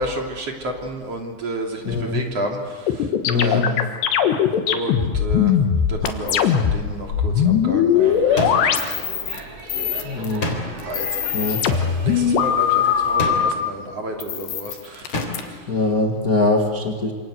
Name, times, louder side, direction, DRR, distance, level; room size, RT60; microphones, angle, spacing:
voice 1, 0.0-3.1 3.3-3.8 4.7-5.5 5.9-9.4 9.7-10.0 10.7-11.1 11.4-15.6, right 1 dB, 40° right, 1 dB, 3.7 m, -31 dB
voice 2, 1.8-2.2 3.3-3.6 10.0-10.5 11.3-11.7 15.7-17.1, left 3 dB, 65° left, 1 dB, 0.9 m, -22 dB
sound 1, 2.9-6.8 7.1-9.4 9.7-10.4 10.8-13.5 14.2-15.4, left 8 dB, 80° left, 3.6 m, -20 dB
Speech / Shout / Subway metro underground, 8.0-13.2, right 3 dB, 85° right, 6.7 m, -37 dB
sound 2, 8.4-8.9 10.4-11.0 13.2-13.7 15.1-15.6, left 2 dB, 30° left, 4.1 m, -28 dB
27.5 x 27.0 x 7.9 m, 1.5 s
omnidirectional pair, 4.9 m